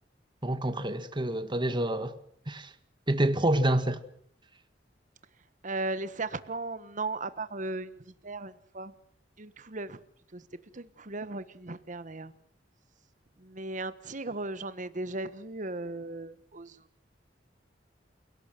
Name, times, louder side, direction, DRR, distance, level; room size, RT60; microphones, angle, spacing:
voice 1, 0.4-2.1 2.5-2.7 3.1-4.0, right 1 dB, 25° right, 1.7 m, -27 dB
voice 2, 5.6-8.9 9.4-10.0 10.3-10.4 10.7-12.3 13.4-16.8, right 2 dB, 45° right, 1.4 m, -36 dB
29.0 x 17.5 x 7.7 m
head